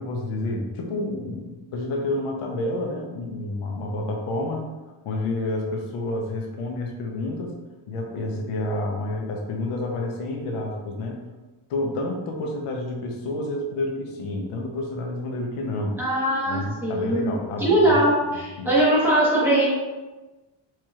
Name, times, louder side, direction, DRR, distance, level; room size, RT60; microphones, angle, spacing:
voice 1, 0.0-4.6 5.0-7.5 7.9-11.2 11.7-16.0 16.5-18.7, left 2 dB, 90° left, 1 dB, 0.8 m, -29 dB
voice 2, 16.0-19.6, right 1 dB, 5° right, -9 dB, 1.1 m, -21 dB
4.7 x 2.9 x 2.3 m, 1.2 s
wide cardioid pair, 180°, 50 cm